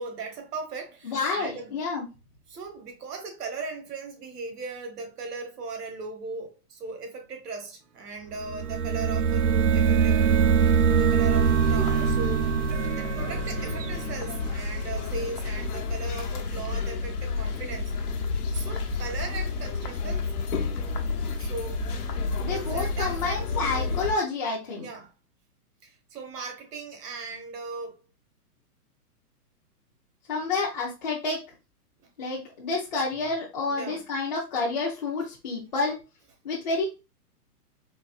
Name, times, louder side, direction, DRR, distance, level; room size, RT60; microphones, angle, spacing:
voice 1, 0.0-1.7 2.5-12.5 13.0-17.9 18.5-20.3 21.4-21.8 22.5-23.5 24.8-25.1 25.8-28.0 33.7-34.0, right 4 dB, 80° right, 1.5 m, -38 dB
voice 2, 1.0-2.1 22.4-24.9 30.3-31.4 32.2-35.9 36.4-36.8, left 3 dB, 30° left, 0.6 m, -29 dB
sound 1, 8.4-15.1, right 7 dB, 55° right, 0.5 m, -23 dB
sound 2, 11.3-24.1, left 4 dB, 70° left, 1.0 m, -30 dB
4.1 x 2.8 x 2.3 m
hypercardioid pair, 170°, 47 cm